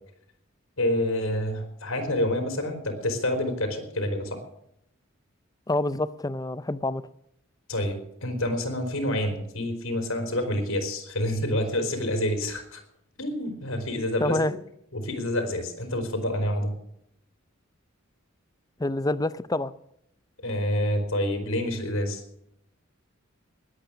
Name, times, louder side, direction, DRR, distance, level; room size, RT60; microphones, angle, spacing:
voice 1, 0.8-4.4 7.7-12.8 13.2-14.4 14.9-16.7 20.4-22.2, left 1 dB, 90° left, 3.9 m, -28 dB
voice 2, 5.7-7.0 14.2-14.5 18.8-19.7, left 2 dB, 20° left, 0.5 m, -27 dB
20.0 x 8.7 x 6.2 m
head